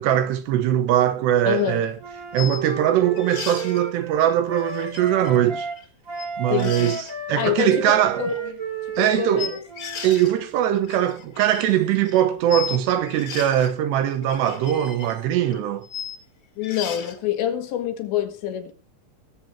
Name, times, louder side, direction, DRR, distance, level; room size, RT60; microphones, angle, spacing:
voice 1, 0.0-2.0 2.3-5.7 6.4-8.2 9.0-9.6 10.0-15.9, right 11 dB, 75° right, 2.8 m, -21 dB
voice 2, 1.5-1.8 6.5-7.0 7.4-8.5 9.0-9.6 16.6-18.7, left 10 dB, 75° left, 3.7 m, -26 dB
sound 1, 1.7-1.8 2.3-2.6 3.1-3.8 4.6-5.9 6.1-6.3 6.6-7.1 7.8-8.4 9.4-10.3 10.6-12.8 13.1-13.7 14.1-16.2 16.6-17.1, left 8 dB, 45° left, 2.0 m, -36 dB
Wind instrument woodwind instrument, 2.0-5.8 6.0-10.2, right 4 dB, 30° right, 1.6 m, -33 dB
21.5 x 7.5 x 4.4 m
omnidirectional pair, 5.4 m